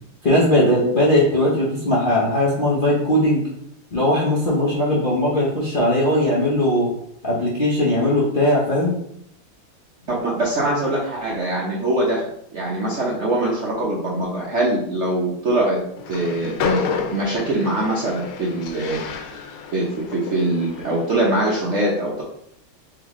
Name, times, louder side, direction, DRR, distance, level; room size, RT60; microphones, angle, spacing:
voice 1, 0.2-3.4 3.9-6.9 7.2-9.0, left 1 dB, 55° left, -7 dB, 0.6 m, -19 dB
voice 2, 10.1-12.2 12.5-15.8 16.1-16.8 17.1-19.0 19.7-22.2, right 1 dB, 65° right, -4 dB, 0.7 m, -22 dB
Train, 16.0-21.3, left 5 dB, 90° left, 1.5 m, -30 dB
3.5 x 3.5 x 3.6 m, 0.72 s
omnidirectional pair, 2.2 m